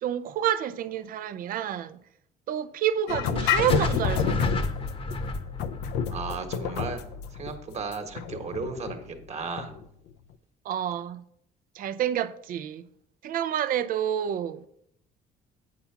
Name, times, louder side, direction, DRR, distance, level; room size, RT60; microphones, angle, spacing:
voice 1, 0.0-2.0 2.5-4.6 10.6-11.2 11.8-12.8 13.2-14.7, right 10 dB, 55° right, 0.5 m, -29 dB
sound 1, 3.1-9.8, left 7 dB, 85° left, 0.6 m, -30 dB
sound 2, 3.3-7.5, left 2 dB, 35° left, 1.0 m, -32 dB
voice 2, 6.1-7.0 7.3-9.7, right 4 dB, 40° right, 1.4 m, -35 dB
8.5 x 5.6 x 5.7 m
cardioid pair, 110°, 17 cm